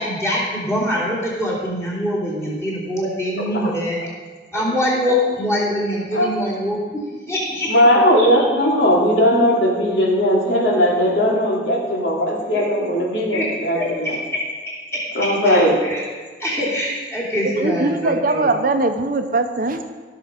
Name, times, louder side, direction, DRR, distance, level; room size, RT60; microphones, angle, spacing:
voice 1, 0.0-4.0 4.5-7.0 7.3-7.7 12.5-12.6 13.3-13.4 13.7-14.4 14.9-15.0 15.4-16.0 16.4-18.5, left 1 dB, 15° left, -6 dB, 3.1 m, -24 dB
voice 2, 7.7-14.2 15.1-15.7, equal, 80° left, -3 dB, 2.8 m, -18 dB
voice 3, 17.5-19.9, right 2 dB, 50° right, 7 dB, 0.7 m, -20 dB
16.0 x 6.6 x 5.1 m, 1.4 s
head